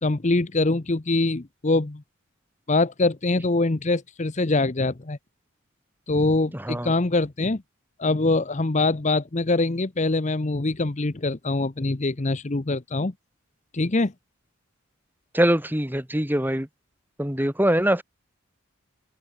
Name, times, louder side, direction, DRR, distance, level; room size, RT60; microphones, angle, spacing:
voice 1, 0.0-2.0 2.7-5.2 6.1-7.6 8.0-13.1 13.7-14.1, left 2 dB, 35° left, 0.8 m, -23 dB
voice 2, 15.3-16.7 17.2-18.0, right 1 dB, 10° right, 2.8 m, -23 dB
open air
head